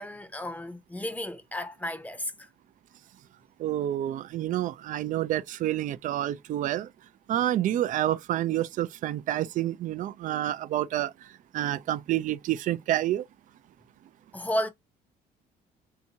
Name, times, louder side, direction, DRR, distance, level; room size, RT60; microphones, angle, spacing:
voice 1, 0.0-2.5 14.3-14.7, left 1 dB, 10° left, 0.7 m, -33 dB
voice 2, 3.6-6.9 7.3-11.1 11.5-13.2, right 13 dB, 50° right, 0.4 m, -28 dB
3.5 x 2.7 x 2.8 m
cardioid pair, 110°, 17 cm